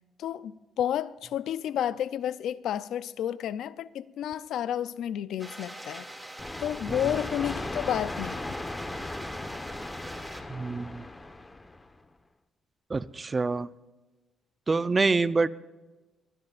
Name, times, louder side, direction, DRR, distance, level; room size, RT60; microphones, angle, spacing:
voice 1, 0.2-6.1 6.6-8.6, left 10 dB, 75° left, 0.5 m, -31 dB
sound 1, 5.4-10.4, right 1 dB, 10° right, 2.4 m, -43 dB
sound 2, 6.4-12.0, left 2 dB, 20° left, 1.2 m, -37 dB
voice 2, 10.5-11.1 12.9-13.7 14.7-15.5, right 3 dB, 30° right, 0.6 m, -26 dB
22.5 x 20.0 x 2.5 m
cardioid pair, 90°, 0 cm